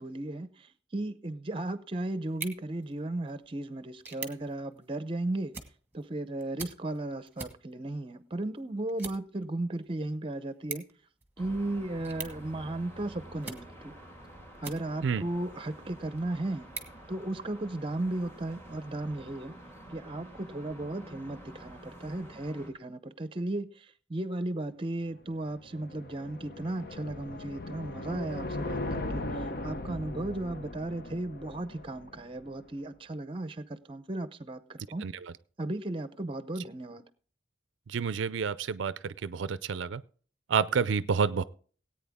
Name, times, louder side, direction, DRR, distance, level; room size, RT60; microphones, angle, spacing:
voice 1, 0.0-5.5 5.9-10.8 11.4-13.9 14.6-16.7 17.1-19.5 19.9-29.2 29.6-35.1 35.6-37.1, right 2 dB, 30° right, 0.7 m, -35 dB
sound 1, 2.2-15.2 15.7-17.8, right 4 dB, 10° right, 1.4 m, -47 dB
sound 2, 11.4-22.7, right 1 dB, 15° left, 2.1 m, -49 dB
sound 3, 25.1-32.5, left 2 dB, 50° left, 0.8 m, -38 dB
voice 2, 37.9-40.0 40.5-41.4, right 6 dB, 75° right, 0.4 m, -29 dB
17.5 x 8.9 x 3.6 m
head